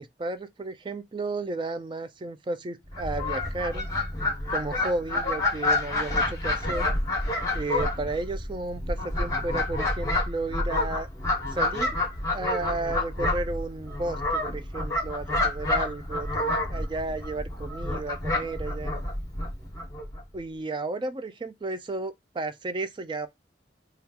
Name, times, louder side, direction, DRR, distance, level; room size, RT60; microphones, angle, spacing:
voice 1, 0.0-3.9 4.5-6.9 7.5-11.1 11.5-19.0 20.3-23.3, right 2 dB, 25° right, 0.4 m, -33 dB
Fowl, 2.9-20.2, left 2 dB, 20° left, 1.2 m, -28 dB
3.6 x 2.4 x 2.8 m
head